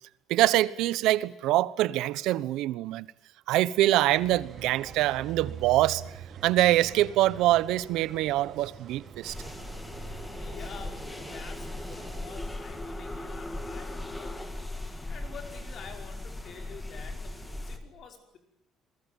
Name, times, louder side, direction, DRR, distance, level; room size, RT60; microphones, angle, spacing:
voice 1, 0.3-3.1 3.5-6.0 6.4-9.3, right 15 dB, 85° right, 1.0 m, -24 dB
sound 1, 4.1-12.4, right 9 dB, 40° right, 1.7 m, -44 dB
sound 2, 9.2-17.8, left 2 dB, 10° left, 2.4 m, -38 dB
voice 2, 10.3-14.5 14.8-18.4, left 6 dB, 45° left, 5.3 m, -48 dB
28.0 x 21.5 x 9.1 m
cardioid pair, 160°, 0 cm